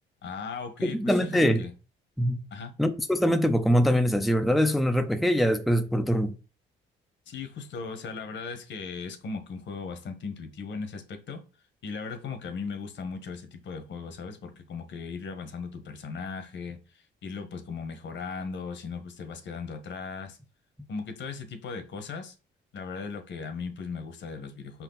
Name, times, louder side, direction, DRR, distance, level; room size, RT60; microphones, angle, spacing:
voice 1, 0.2-1.7 2.5-2.7 7.3-11.4 11.8-20.4 20.9-22.3 22.7-24.8, left 5 dB, 65° left, 1.4 m, -37 dB
voice 2, 0.8-1.6 2.2-2.5 2.8-6.4, equal, ahead, 0.6 m, -23 dB
5.2 x 4.5 x 4.0 m
cardioid pair, 90°, 20 cm